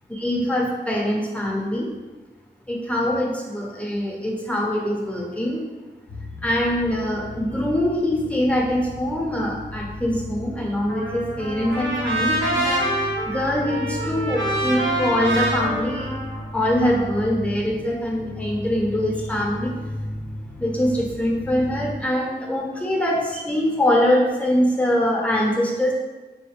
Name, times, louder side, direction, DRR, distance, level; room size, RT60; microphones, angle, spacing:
voice 1, 0.1-1.9 2.7-5.6 6.4-12.9 13.3-16.2 16.5-19.7 20.6-25.9, left 1 dB, 5° left, -2 dB, 0.8 m, -23 dB
sound 1, 6.1-22.0, left 1 dB, 80° left, 0.5 m, -35 dB
Trumpet, 10.9-17.1, right 1 dB, 85° right, 0.7 m, -26 dB
4.0 x 2.2 x 3.3 m, 1.3 s
wide cardioid pair, 50°, 19 cm